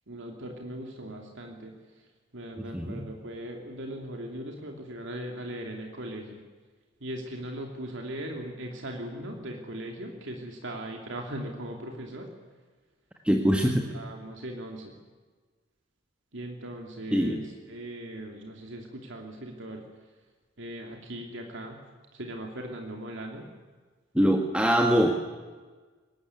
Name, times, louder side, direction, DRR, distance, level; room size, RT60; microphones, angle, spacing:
voice 1, 0.1-1.8 2.3-6.4 7.0-12.3 13.9-14.9 16.3-19.8 20.6-21.8 22.1-23.5, right 1 dB, 65° right, 2 dB, 2.8 m, -39 dB
voice 2, 2.6-3.1 13.2-13.9 17.1-17.4 24.1-25.2, equal, 5° right, 2 dB, 1.6 m, -23 dB
23.0 x 20.5 x 9.7 m, 1.4 s
head